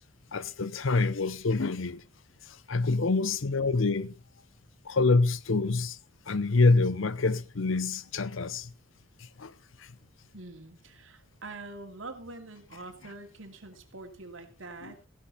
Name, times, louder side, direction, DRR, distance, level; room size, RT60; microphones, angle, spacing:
voice 1, 0.3-2.0 2.5-4.1 4.8-6.0 6.3-8.7 9.2-9.5 9.8-9.9 14.8-14.9, left 3 dB, 80° left, 0.8 m, -26 dB
voice 2, 10.3-15.0, right 2 dB, 70° right, 2.6 m, -45 dB
15.0 x 11.0 x 4.2 m
head